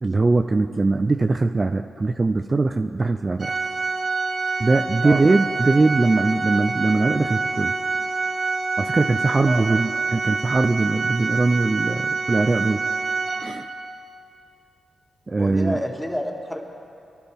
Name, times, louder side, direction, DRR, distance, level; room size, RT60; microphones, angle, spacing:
voice 1, 0.0-3.5 4.6-7.7 8.8-12.9 13.4-13.7 15.3-15.8, right 3 dB, 35° right, 6 dB, 0.5 m, -21 dB
Organ, 3.4-14.0, right 4 dB, 55° right, 1.0 m, -26 dB
voice 2, 9.5-9.8 15.4-16.6, left 1 dB, 10° left, 0 dB, 2.1 m, -29 dB
25.5 x 11.5 x 3.6 m, 2.5 s
supercardioid pair, 50°, 0 cm